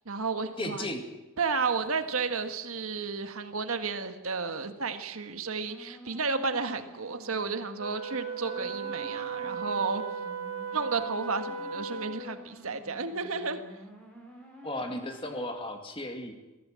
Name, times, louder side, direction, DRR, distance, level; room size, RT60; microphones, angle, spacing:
voice 1, 0.1-0.9 1.4-10.0 10.7-13.6, right 4 dB, 85° right, 8 dB, 1.6 m, -32 dB
voice 2, 0.6-1.0 14.6-16.3, left 1 dB, 25° left, 5 dB, 2.2 m, -35 dB
sound 1, 5.7-15.5, equal, 5° left, 5.0 m, -50 dB
Wind instrument woodwind instrument, 7.8-12.4, right 5 dB, 70° right, 2.8 m, -36 dB
23.0 x 15.0 x 7.7 m, 1.1 s
head